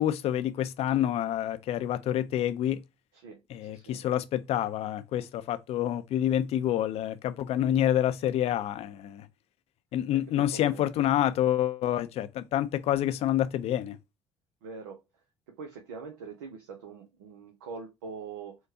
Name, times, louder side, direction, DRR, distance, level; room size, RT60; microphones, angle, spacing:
voice 1, 0.0-2.8 3.5-9.3 9.9-14.0, left 11 dB, 60° left, 0.5 m, -28 dB
voice 2, 3.1-4.0 10.1-10.9 14.6-15.0 15.6-18.6, right 5 dB, 90° right, 0.6 m, -43 dB
4.4 x 2.3 x 2.7 m
hypercardioid pair, 60°, 12 cm